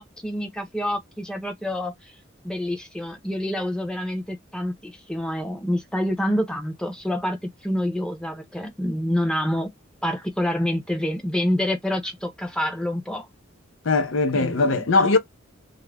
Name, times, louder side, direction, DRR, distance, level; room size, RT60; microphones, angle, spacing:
voice 1, 0.0-2.1 2.4-7.4 7.6-9.7 10.0-13.3 14.3-14.8, left 1 dB, 5° left, 0.7 m, -27 dB
voice 2, 13.8-15.2, left 3 dB, 75° left, 0.7 m, -20 dB
2.5 x 2.1 x 3.3 m
head